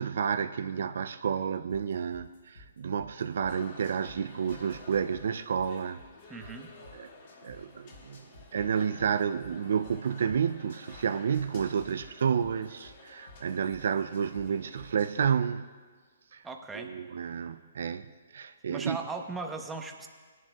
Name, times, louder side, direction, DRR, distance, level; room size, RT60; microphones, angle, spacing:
voice 1, 0.0-6.0 6.9-7.1 7.4-8.3 8.5-15.7 16.3-16.5 16.7-18.1 18.3-19.0, right 7 dB, 65° right, 11 dB, 0.4 m, -30 dB
sound 1, 1.7-4.1 4.5-7.6 7.9-11.0 11.3-14.4 14.8-15.3, left 2 dB, 70° left, 3.4 m, -52 dB
sound 2, 3.4-14.9, left 3 dB, 45° left, 2.0 m, -53 dB
voice 2, 6.3-6.7 16.4-17.0 18.7-20.1, right 3 dB, 10° right, 4 dB, 0.9 m, -38 dB
19.5 x 11.0 x 2.3 m, 1.5 s
hypercardioid pair, 140°, 0 cm